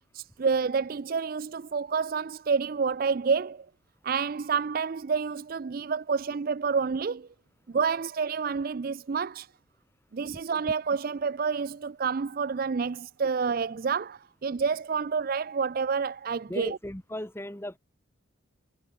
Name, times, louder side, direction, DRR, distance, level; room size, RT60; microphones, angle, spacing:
voice 1, 0.1-3.7 4.0-7.3 7.7-9.5 10.1-16.8, right 5 dB, 45° right, 0.4 m, -29 dB
voice 2, 16.5-17.8, left 1 dB, 10° left, 1.2 m, -36 dB
head